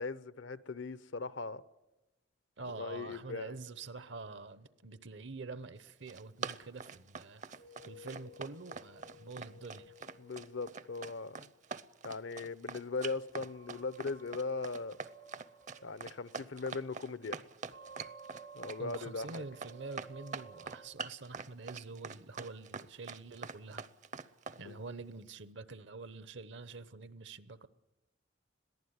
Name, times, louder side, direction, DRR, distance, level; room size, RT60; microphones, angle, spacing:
voice 1, 0.0-1.6 2.8-3.6 10.2-11.5 12.0-15.0 15.8-17.4 18.5-19.4 24.5-24.8, left 3 dB, 70° left, 0.7 m, -39 dB
voice 2, 2.6-7.6 7.8-10.0 18.8-23.8 24.6-27.7, right 3 dB, 65° right, 0.9 m, -46 dB
Run, 5.9-24.6, right 5 dB, 40° right, 0.7 m, -44 dB
sound 1, 7.5-11.4 13.3-17.2 17.7-20.9, right 2 dB, 85° right, 3.8 m, -56 dB
22.0 x 15.0 x 9.6 m
head